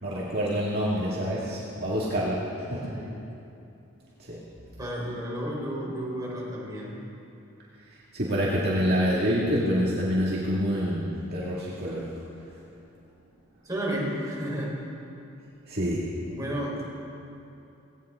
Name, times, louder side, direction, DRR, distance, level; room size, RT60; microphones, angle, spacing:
voice 1, 0.0-2.9 4.3-4.4 8.1-12.1 15.7-16.1, equal, 50° right, -7 dB, 2.1 m, -27 dB
voice 2, 2.9-3.2 4.8-7.0 13.6-14.8 16.3-16.8, equal, 15° right, -5 dB, 4.1 m, -32 dB
18.5 x 17.5 x 3.7 m, 2.8 s
head